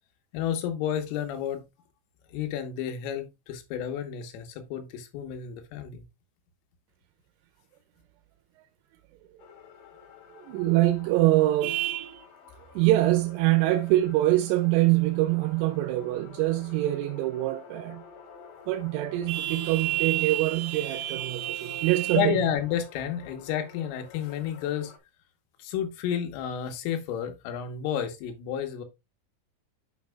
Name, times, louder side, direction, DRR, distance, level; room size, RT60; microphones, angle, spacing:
voice 1, 0.3-1.7 2.3-6.1 22.1-24.9 25.6-28.8, left 9 dB, 90° left, 3.7 m, -31 dB
sound 1, 9.4-25.0, left 5 dB, 60° left, 3.0 m, -50 dB
voice 2, 10.3-12.3 12.7-18.0 18.7-22.4, right 16 dB, 85° right, 3.0 m, -24 dB
11.0 x 5.9 x 2.3 m
omnidirectional pair, 5.7 m